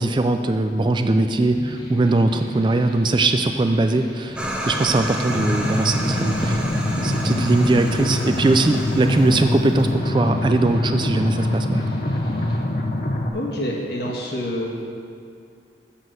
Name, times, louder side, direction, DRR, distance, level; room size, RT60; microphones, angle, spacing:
voice 1, 0.0-4.4 4.7-6.6 7.0-11.8, right 2 dB, 25° right, 7 dB, 0.3 m, -20 dB
sound 1, 1.4-12.6, equal, 25° left, 1.1 m, -38 dB
sound 2, 4.4-9.9, right 1 dB, 5° right, 0.8 m, -30 dB
sound 3, 5.3-13.3, left 1 dB, 45° left, 0.8 m, -24 dB
voice 2, 13.3-14.7, left 1 dB, 60° left, -2 dB, 1.5 m, -27 dB
7.4 x 6.1 x 7.7 m, 2.4 s
head